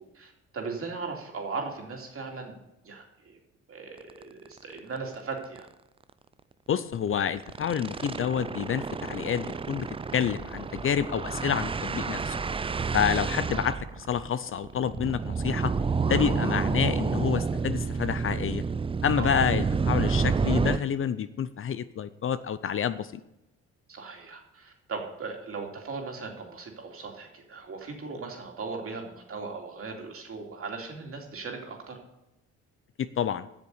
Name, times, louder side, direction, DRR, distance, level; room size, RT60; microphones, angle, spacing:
voice 1, 0.0-2.5 2.8-3.4 3.7-5.7 19.2-19.3 23.9-32.0, right 4 dB, 45° right, 2 dB, 2.7 m, -38 dB
sound 1, 4.1-4.2 4.6-4.7 5.0-5.1 5.4-5.6 6.9-20.8, right 5 dB, 20° right, 0.4 m, -29 dB
voice 2, 6.7-9.9 10.1-12.4 12.9-15.7 16.1-18.6 19.0-23.2 33.0-33.5, left 8 dB, 45° left, 14 dB, 0.5 m, -28 dB
8.1 x 6.9 x 8.2 m, 0.90 s
cardioid pair, 90°, 30 cm